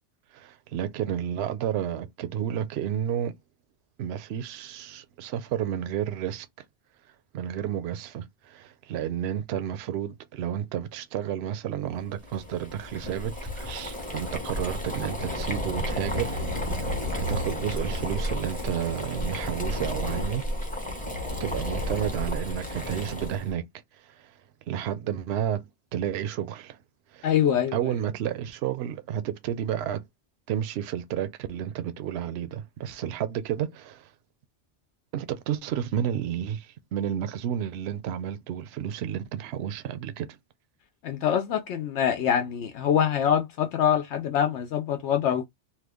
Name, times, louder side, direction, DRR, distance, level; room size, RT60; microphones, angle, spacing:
voice 1, 0.3-3.3 4.0-6.5 7.3-16.4 16.7-16.9 17.2-20.4 21.4-23.7 23.9-24.4 24.7-25.7 25.9-26.8 27.1-27.3 27.7-30.0 30.5-34.1 35.1-40.4, right 10 dB, 70° right, 0.8 m, -31 dB
Boiling, 12.2-23.5, left 1 dB, 10° left, 0.8 m, -32 dB
voice 2, 27.2-27.8 41.0-45.5, left 9 dB, 80° left, 0.9 m, -24 dB
2.9 x 2.2 x 3.4 m
omnidirectional pair, 1.2 m